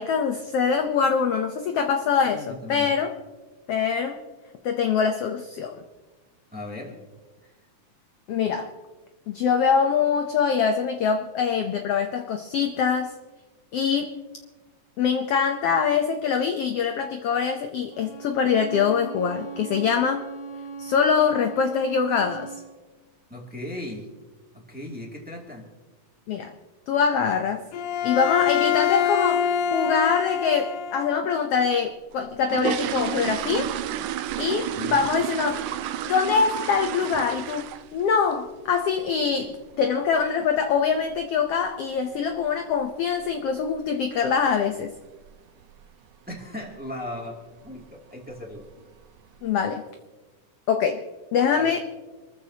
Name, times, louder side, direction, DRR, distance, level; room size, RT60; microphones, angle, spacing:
voice 1, 0.0-3.1 3.7-4.2 4.6-5.7 8.3-8.7 9.3-13.1 13.7-14.1 15.0-20.2 20.8-22.5 26.3-26.5 26.9-27.6 28.0-33.7 34.4-35.7 36.1-37.7 37.9-44.9 49.4-49.8 50.7-51.0 51.3-51.8, left 6 dB, 70° left, 5 dB, 1.5 m, -24 dB
voice 2, 2.2-2.9 6.5-6.9 23.3-24.1 24.5-25.6 34.7-35.1 46.3-48.6 51.5-51.8, left 1 dB, 5° right, -1 dB, 2.0 m, -37 dB
Bowed string instrument, 17.9-22.7, right 5 dB, 40° left, 4.6 m, -38 dB
Bowed string instrument 2, 27.7-31.2, left 9 dB, 90° left, 2.5 m, -25 dB
sound 1, 32.1-38.0 38.3-38.6 39.0-39.1 39.4-39.6 39.9-40.2 40.4-40.5 41.1-41.2 41.5-41.6 42.1-42.4 42.7-42.8 43.2-43.4 43.7-43.8 44.3-44.4 45.0-45.3 45.6-45.9 46.3-46.4 46.8-46.9 47.7-47.8 48.2-48.7 49.2-49.3, right 11 dB, 80° right, 2.0 m, -31 dB
26.5 x 14.5 x 2.9 m, 1.3 s
omnidirectional pair, 3.5 m